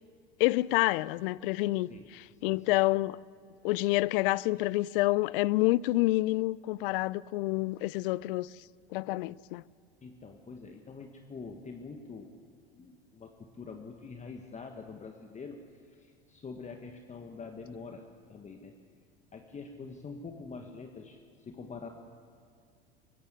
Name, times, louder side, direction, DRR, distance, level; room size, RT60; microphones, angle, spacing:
voice 1, 0.4-3.2 3.6-8.6 8.9-9.6, left 19 dB, 60° left, 0.5 m, -28 dB
voice 2, 2.3-2.8 10.0-12.3 12.7-18.0 18.3-18.8 19.3-21.9, left 4 dB, 25° left, 1.5 m, -45 dB
24.0 x 14.5 x 8.2 m
hypercardioid pair, 80°, 31 cm